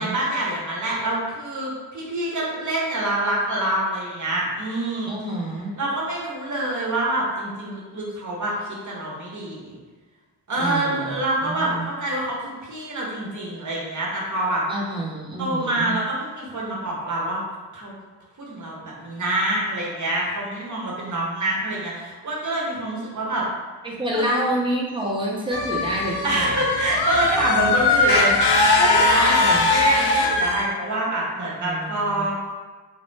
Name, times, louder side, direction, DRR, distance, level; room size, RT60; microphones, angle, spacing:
voice 1, 0.0-5.1 5.8-9.8 10.5-14.6 15.4-17.4 17.7-17.9 18.4-23.5 24.1-24.3 26.2-29.4 29.7-32.4, right 1 dB, 40° right, -4 dB, 0.8 m, -26 dB
voice 2, 5.1-5.7 10.6-11.2 11.4-11.8 14.7-16.0 23.8-26.6 29.2-29.7 31.6-32.3, right 1 dB, 10° right, -3 dB, 0.6 m, -28 dB
sound 1, 25.5-30.6, left 3 dB, 60° left, 0.6 m, -20 dB
2.1 x 2.0 x 3.2 m, 1.4 s
cardioid pair, 55°, 46 cm